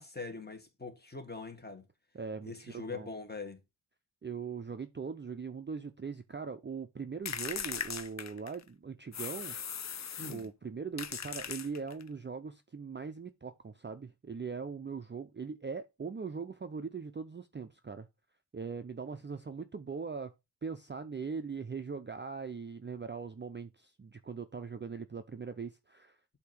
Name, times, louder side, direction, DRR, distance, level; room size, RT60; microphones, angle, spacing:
voice 1, 0.0-1.8 2.4-3.6 10.2-10.5, left 4 dB, 25° left, 1.6 m, -43 dB
voice 2, 2.1-3.1 4.2-9.6 10.2-18.1 18.5-20.3 20.6-26.2, right 5 dB, 25° right, 0.5 m, -40 dB
sound 1, 7.3-8.7 9.1-10.5 11.0-12.1, left 7 dB, 40° left, 0.5 m, -39 dB
8.2 x 2.8 x 6.0 m
wide cardioid pair, 110°, 42 cm